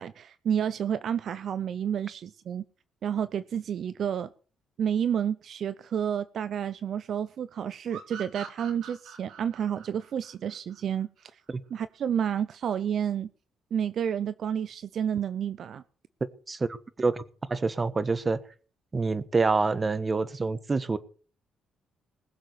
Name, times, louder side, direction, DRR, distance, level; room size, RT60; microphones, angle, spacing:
voice 1, 0.0-2.6 3.0-4.3 4.8-11.3 11.7-13.3 13.7-15.8, right 8 dB, 60° right, 15 dB, 0.7 m, -30 dB
sound 1, 7.9-11.3, right 7 dB, 85° right, 3.7 m, -44 dB
voice 2, 16.5-17.2 17.5-18.4 18.9-21.0, right 3 dB, 30° right, 15 dB, 1.3 m, -27 dB
20.5 x 7.5 x 6.9 m, 0.41 s
cardioid pair, 90°, 0 cm